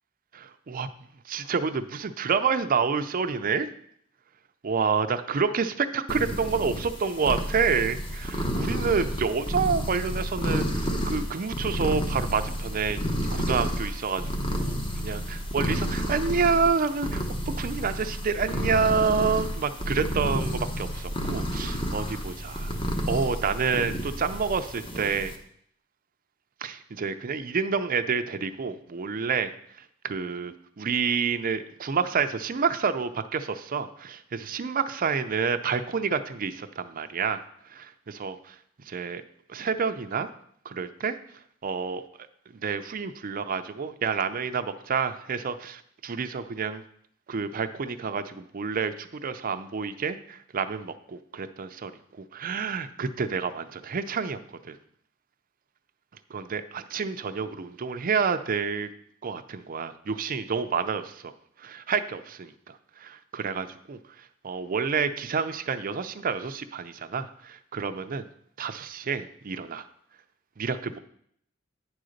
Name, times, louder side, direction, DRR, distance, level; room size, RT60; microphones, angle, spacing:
voice 1, 0.3-0.9 1.3-3.7 4.6-13.0 13.3-22.8 23.1-25.3 26.6-29.5 30.0-37.4 37.7-38.6 38.9-39.2 39.5-40.3 40.7-41.2 41.6-42.0 42.5-46.8 47.3-51.9 52.2-54.8 56.3-58.9 59.2-61.3 61.6-68.3 68.6-69.9 70.6-71.0, right 5 dB, 45° right, 10 dB, 0.5 m, -28 dB
sound 1, 6.1-25.4, equal, 25° left, 1.0 m, -31 dB
9.6 x 3.9 x 6.4 m, 0.67 s
head